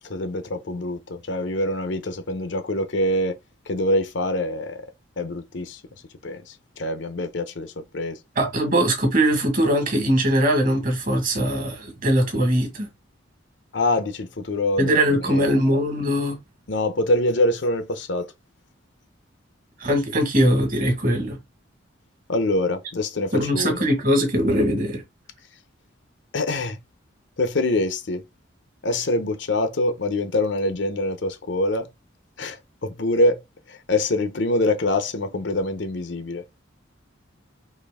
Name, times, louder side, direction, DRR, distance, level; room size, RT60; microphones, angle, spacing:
voice 1, 0.1-3.4 3.7-4.8 5.2-5.8 6.2-8.2 13.7-15.5 16.7-18.3 22.3-23.9 26.3-26.8 27.4-28.2 28.8-31.9 32.4-33.4 33.7-36.4, left 1 dB, 65° left, 0.7 m, -25 dB
voice 2, 8.4-12.9 14.8-16.4 19.8-21.4 23.3-25.0, equal, 45° right, 1.5 m, -21 dB
4.3 x 3.0 x 3.5 m
head